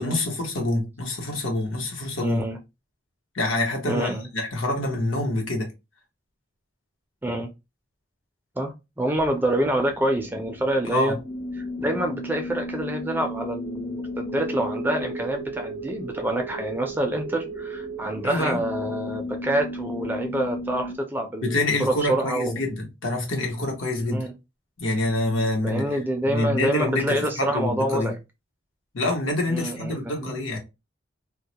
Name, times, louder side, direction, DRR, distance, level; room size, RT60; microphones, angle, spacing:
voice 1, 0.0-2.4 3.3-5.7 10.8-11.2 18.2-18.6 21.4-24.2 24.8-25.8 26.2-28.1 28.9-30.6, left 2 dB, 90° left, 0.9 m, -26 dB
voice 2, 2.2-2.6 3.9-4.3 7.2-7.5 8.6-11.2 11.6-22.6 24.0-24.3 25.6-28.2 29.5-30.4, right 1 dB, 10° right, 0.4 m, -27 dB
sound 1, 9.3-21.0, equal, 45° left, 0.6 m, -34 dB
2.2 x 2.0 x 2.8 m
head